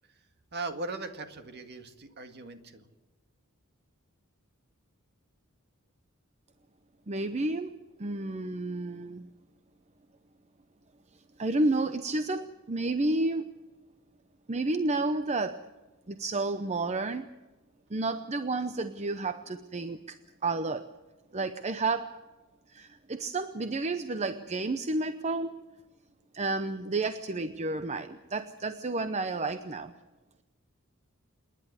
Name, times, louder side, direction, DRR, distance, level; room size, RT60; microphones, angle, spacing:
voice 1, 0.5-2.8, right 3 dB, 50° right, 7 dB, 1.9 m, -39 dB
voice 2, 7.1-7.7 8.0-9.2 11.4-13.5 14.5-15.7 16.1-17.3 17.9-20.2 20.4-20.9 21.3-22.2 22.7-25.6 26.3-29.9, right 2 dB, 30° right, 10 dB, 0.7 m, -31 dB
27.5 x 11.0 x 9.6 m, 1.2 s
head